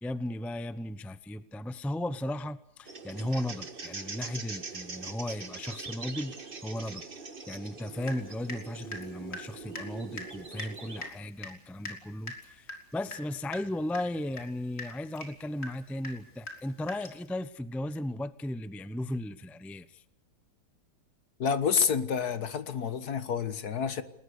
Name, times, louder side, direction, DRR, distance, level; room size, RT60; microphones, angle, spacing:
voice 1, 0.0-20.0, left 1 dB, ahead, 0.6 m, -36 dB
sound 1, 2.8-11.1, right 4 dB, 35° right, 1.7 m, -42 dB
Water tap faucet / Drip, 8.0-8.7 8.9-17.3, left 2 dB, 40° left, 4.5 m, -43 dB
voice 2, 21.4-24.0, left 6 dB, 70° left, 1.9 m, -29 dB
29.5 x 20.0 x 6.7 m
omnidirectional pair, 1.8 m